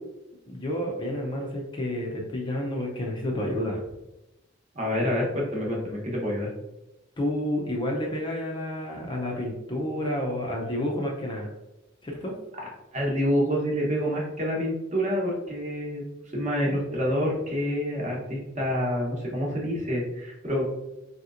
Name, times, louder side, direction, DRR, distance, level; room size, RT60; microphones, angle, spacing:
voice 1, 0.5-3.8 7.2-11.5 12.0-12.3, left 1 dB, 25° left, -1 dB, 0.4 m, -30 dB
voice 2, 4.7-6.5 12.9-16.0 16.3-20.7, equal, 35° right, -3 dB, 0.9 m, -27 dB
3.2 x 2.8 x 2.4 m, 0.95 s
head